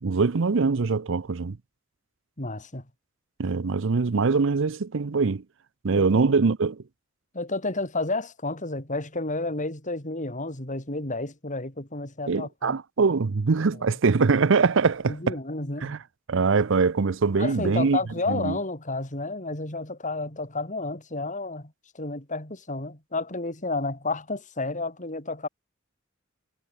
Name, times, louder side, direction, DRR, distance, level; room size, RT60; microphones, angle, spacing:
voice 1, 0.0-1.6 3.4-5.4 5.8-6.8 12.3-15.4 15.8-16.0 16.3-18.0 18.3-18.6, right 4 dB, 65° right, 0.6 m, -23 dB
voice 2, 2.4-2.8 5.9-6.2 7.3-12.8 15.1-16.0 17.4-25.5, left 2 dB, 40° left, 4.9 m, -31 dB
head